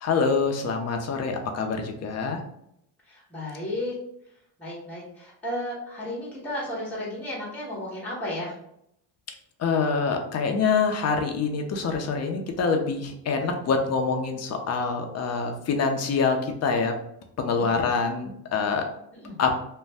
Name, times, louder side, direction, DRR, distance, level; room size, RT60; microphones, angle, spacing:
voice 1, 0.0-2.4 9.6-16.9 17.4-18.8 19.4-19.5, left 5 dB, 40° left, 4 dB, 0.5 m, -25 dB
voice 2, 3.3-3.9 4.6-8.5 17.5-17.8 19.2-19.3, left 1 dB, 5° left, -5 dB, 1.3 m, -33 dB
2.5 x 2.1 x 3.4 m, 0.75 s
cardioid pair, 110°, 43 cm